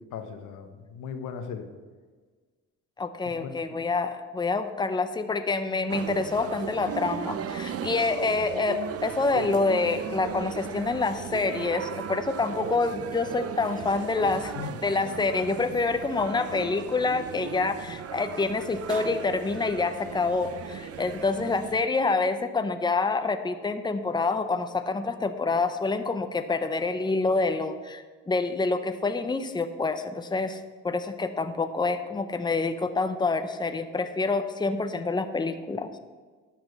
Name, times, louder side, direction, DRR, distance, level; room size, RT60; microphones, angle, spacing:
voice 1, 0.1-1.7 3.4-3.8 14.5-14.7, left 6 dB, 85° left, 7 dB, 1.2 m, -37 dB
voice 2, 3.0-14.5 14.8-30.6 30.8-35.9, left 3 dB, 15° left, 9 dB, 0.8 m, -27 dB
sound 1, 5.9-21.8, right 8 dB, 55° right, 0.7 m, -37 dB
11.5 x 6.1 x 6.8 m, 1.5 s
cardioid pair, 90°, 30 cm